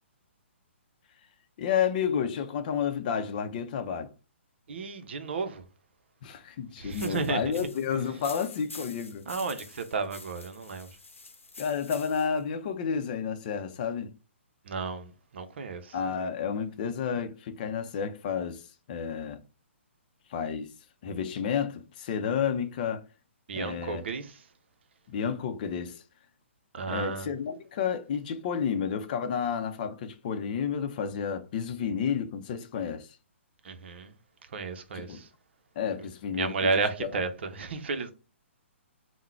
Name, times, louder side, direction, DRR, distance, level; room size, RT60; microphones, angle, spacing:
voice 1, 1.6-4.1 6.2-9.3 11.6-14.1 15.9-19.4 20.3-20.7 21.0-23.0 23.5-24.0 25.1-26.0 26.9-33.2 34.9-35.2 35.8-37.1, left 7 dB, 40° left, 0.6 m, -31 dB
voice 2, 4.7-5.7 6.8-7.4 9.3-11.0 14.6-16.0 23.5-24.4 26.7-27.3 33.6-34.1 34.5-35.3 36.3-38.1, right 4 dB, 60° right, 0.7 m, -32 dB
sound 1, 6.9-12.4, left 3 dB, 85° left, 0.8 m, -47 dB
3.7 x 2.2 x 4.3 m
figure-of-eight pair, 135°, 7 cm